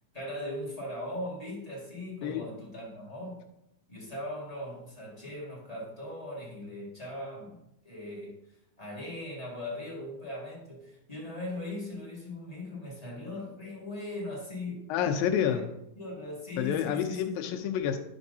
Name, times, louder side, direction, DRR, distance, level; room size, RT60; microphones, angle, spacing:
voice 1, 0.1-3.5 3.9-7.6 7.8-8.4 8.8-14.9 15.4-15.6 15.9-17.5, left 1 dB, 20° left, -5 dB, 0.9 m, -39 dB
voice 2, 14.9-15.7 16.6-18.0, left 9 dB, 90° left, 6 dB, 2.5 m, -28 dB
11.0 x 6.2 x 2.7 m, 0.82 s
omnidirectional pair, 4.0 m